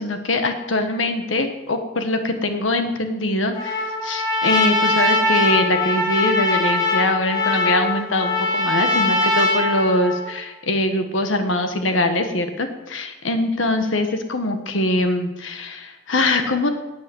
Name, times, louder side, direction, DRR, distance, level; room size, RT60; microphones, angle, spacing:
voice 1, 0.0-16.7, left 2 dB, 90° left, 7 dB, 1.4 m, -22 dB
Trumpet, 3.5-10.3, left 2 dB, 20° left, 2.8 m, -21 dB
11.5 x 8.7 x 9.3 m, 1.1 s
head